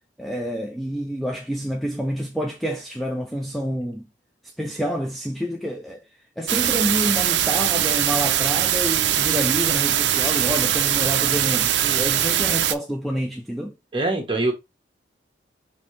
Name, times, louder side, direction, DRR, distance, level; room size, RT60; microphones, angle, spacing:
voice 1, 0.2-4.1 4.6-6.0 6.4-13.7, equal, ahead, 0.4 m, -28 dB
sound 1, 6.5-12.7, right 11 dB, 70° right, 0.4 m, -21 dB
voice 2, 13.9-14.5, right 2 dB, 25° right, 1.2 m, -23 dB
5.1 x 2.8 x 3.2 m
head